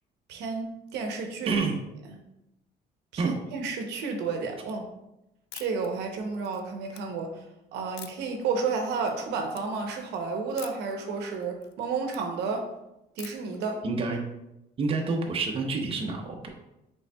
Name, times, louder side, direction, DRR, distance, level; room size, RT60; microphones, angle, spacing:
voice 1, 0.3-1.5 3.1-4.9 5.5-7.4 7.7-12.7 13.2-13.8, right 4 dB, 80° right, 3 dB, 0.7 m, -31 dB
sound 1, 5.5-5.9 6.3-7.0 8.0-8.4 8.8-9.2 9.5-9.7 10.6-10.9 11.3-12.2 13.2-13.6, left 11 dB, 80° left, 0.4 m, -45 dB
voice 2, 13.8-14.2 14.8-16.5, right 4 dB, 35° right, 2 dB, 0.7 m, -28 dB
5.4 x 3.4 x 2.2 m, 0.90 s
cardioid pair, 110°, 17 cm